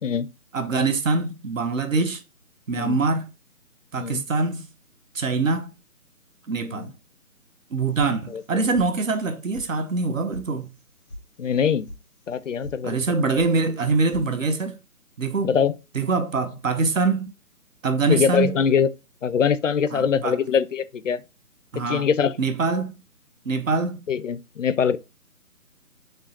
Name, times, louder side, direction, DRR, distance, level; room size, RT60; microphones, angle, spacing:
voice 1, 0.5-2.2 2.7-3.3 3.9-4.7 5.1-5.7 6.5-6.9 7.7-10.7 12.8-14.8 15.2-15.6 15.9-17.3 17.8-18.6 19.9-20.4 21.7-22.1 22.4-22.9 23.5-24.0, right 3 dB, 60° right, 0.8 m, -24 dB
sound 1, 7.9-8.5 8.7-9.3 9.5-9.6 10.0-10.4 10.7-11.2 11.5-12.0 12.3-12.8 13.0-13.5 13.8-14.3, left 1 dB, 15° left, 0.6 m, -39 dB
voice 2, 11.4-11.9 12.3-13.0 15.4-15.7 18.1-18.9 19.2-21.2 21.8-22.4 24.1-25.0, left 7 dB, 60° left, 0.5 m, -23 dB
5.1 x 3.1 x 3.0 m
figure-of-eight pair, 150°, 44 cm